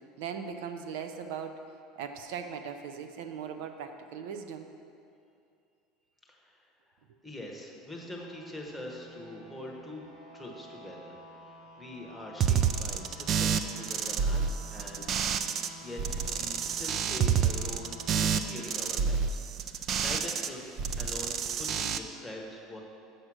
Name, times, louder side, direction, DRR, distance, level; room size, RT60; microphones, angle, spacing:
voice 1, 0.2-1.6 2.0-4.7, right 7 dB, 80° right, 7 dB, 0.6 m, -39 dB
voice 2, 6.3-6.7 7.2-10.1 10.3-11.2 11.5-15.1 15.8-16.0 16.3-20.6 21.0-22.8, left 1 dB, ahead, -2 dB, 1.0 m, -43 dB
sound 1, 8.0-18.8, right 1 dB, 50° right, 2.4 m, -50 dB
sound 2, 12.4-15.7 16.0-20.5 20.8-22.0, right 7 dB, 35° right, 0.4 m, -29 dB
7.3 x 6.7 x 6.2 m, 2.5 s
cardioid pair, 155°, 0 cm